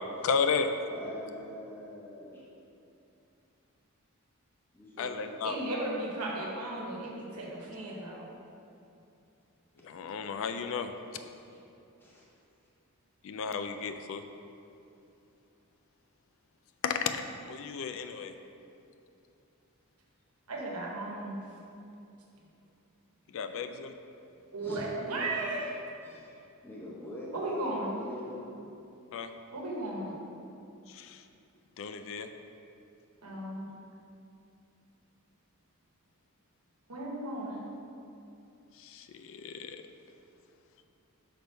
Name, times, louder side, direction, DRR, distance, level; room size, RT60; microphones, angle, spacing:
voice 1, 0.2-0.7 5.0-5.6 9.8-10.9 13.2-14.2 16.8-18.3 23.3-23.9 29.1-29.3 30.9-31.2 31.8-32.3 38.8-39.8, left 5 dB, 60° left, 8 dB, 0.3 m, -33 dB
voice 2, 0.9-2.4 4.7-5.4 11.4-11.6 12.0-12.3 24.6-24.9 26.0-28.6, left 1 dB, 10° left, -6 dB, 0.7 m, -45 dB
voice 3, 5.4-8.3 20.5-21.4 24.5-25.8 27.3-28.0 29.5-30.1 33.2-33.7 36.9-37.6, right 2 dB, 90° right, -3 dB, 1.1 m, -35 dB
5.9 x 3.4 x 5.3 m, 2.7 s
head